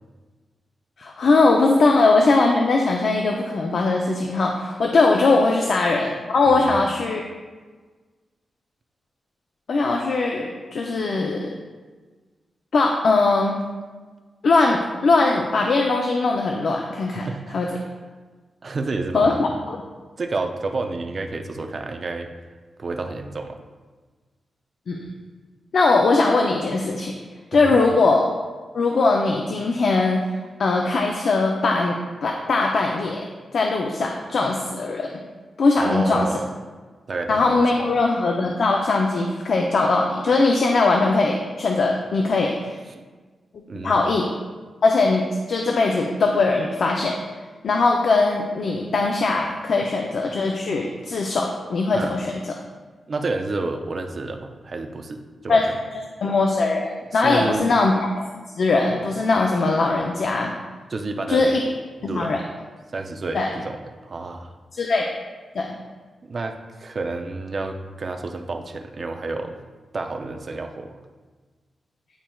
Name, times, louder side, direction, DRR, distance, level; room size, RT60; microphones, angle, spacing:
voice 1, 1.0-7.2 9.7-11.5 12.7-13.6 14.4-17.3 17.5-17.7 19.1-19.8 24.9-25.1 25.7-27.1 27.5-28.4 28.7-30.2 30.6-35.2 35.6-36.3 37.3-42.8 43.8-44.3 44.8-47.2 47.6-52.5 55.5-55.6 56.2-60.5 61.3-61.6 62.0-62.4 63.3-63.5 64.7-65.0 65.5-65.8, left 3 dB, 60° left, 1 dB, 0.5 m, -20 dB
voice 2, 6.5-6.8 17.1-17.9 18.6-19.5 20.2-22.3 22.8-23.6 27.5-27.8 35.8-36.5 37.1-37.9 42.9-43.0 43.7-44.0 51.9-52.1 53.1-55.8 57.1-57.7 60.9-61.5 62.0-62.3 62.9-63.8 64.0-64.5 66.2-69.5 69.9-70.9, right 3 dB, 40° right, 5 dB, 0.5 m, -30 dB
10.0 x 4.4 x 2.3 m, 1.4 s
wide cardioid pair, 135°, 0 cm